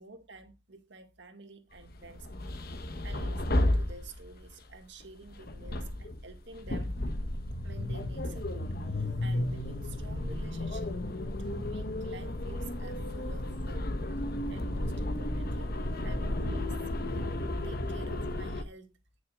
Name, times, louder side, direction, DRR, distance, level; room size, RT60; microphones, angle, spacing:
voice 1, 0.0-2.7 3.0-6.9 7.6-11.0 11.4-15.7 16.0-17.3 17.6-19.0, right 3 dB, 60° right, 1.9 m, -50 dB
sound 1, 1.9-4.5 5.3-18.6, left 1 dB, 50° left, 1.2 m, -33 dB
18.5 x 6.4 x 2.4 m
head